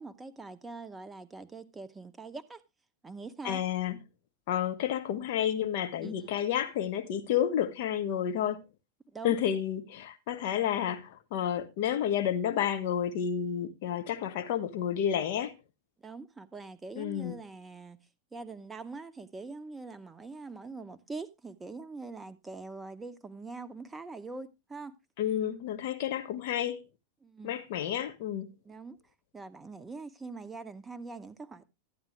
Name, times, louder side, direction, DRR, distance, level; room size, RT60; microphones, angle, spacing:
voice 1, 0.0-2.6 3.0-3.6 6.0-6.3 9.1-9.4 16.0-18.0 18.3-24.9 27.2-27.6 28.6-29.0 29.3-31.7, right 3 dB, 10° right, 0.8 m, -43 dB
voice 2, 3.4-4.0 4.5-8.6 9.2-15.5 17.0-17.4 25.2-26.8 27.4-28.5, left 9 dB, 50° left, 1.2 m, -30 dB
12.5 x 8.8 x 3.2 m
figure-of-eight pair, 90°, 0 cm